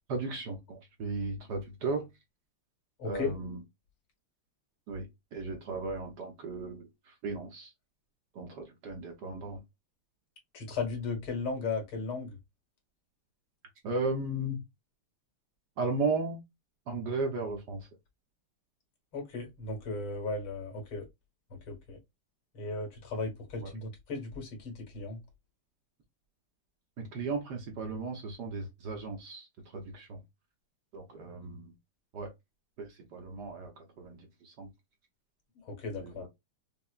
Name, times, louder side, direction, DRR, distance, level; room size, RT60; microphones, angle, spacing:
voice 1, 0.1-2.1 3.0-3.6 4.9-7.7 8.3-9.6 13.8-14.6 15.8-16.4 16.9-17.9 23.6-23.7 27.0-30.2 30.9-31.7 32.1-32.3 32.8-34.7 35.9-36.3, right 3 dB, 60° right, 1.2 m, -36 dB
voice 2, 3.0-3.4 10.5-12.4 19.1-21.0 21.5-22.0 22.5-25.2 35.6-36.3, left 3 dB, 75° left, 2.4 m, -36 dB
5.5 x 2.1 x 2.3 m
omnidirectional pair, 2.4 m